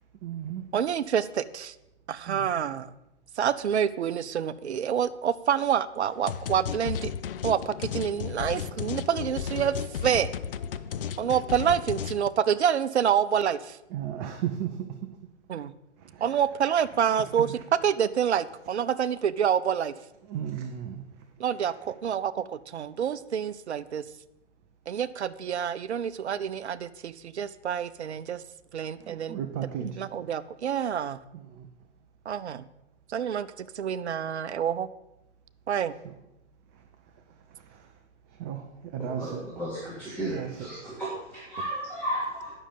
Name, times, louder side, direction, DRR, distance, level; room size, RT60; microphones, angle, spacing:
voice 1, 0.2-0.6 2.3-2.6 13.9-14.7 16.1-16.2 17.4-17.5 20.3-21.0 29.0-29.9 31.3-31.7 38.4-38.6 38.9-39.4 40.2-40.7, right 9 dB, 20° right, 5 dB, 0.6 m, -34 dB
voice 2, 0.7-1.7 2.1-2.9 3.4-7.1 7.4-9.7 10.0-10.3 11.2-13.8 15.5-15.7 16.2-19.9 21.4-24.0 24.9-28.4 28.7-29.4 29.8-31.2 32.3-32.6 33.1-34.9 35.7-35.9, right 8 dB, 65° right, 15 dB, 0.8 m, -27 dB
sound 1, 6.3-12.3, left 8 dB, 50° left, 0.6 m, -34 dB
voice 3, 39.2-42.5, right 1 dB, 5° left, -9 dB, 3.1 m, -34 dB
10.0 x 6.5 x 8.5 m, 0.92 s
figure-of-eight pair, 125°, 35 cm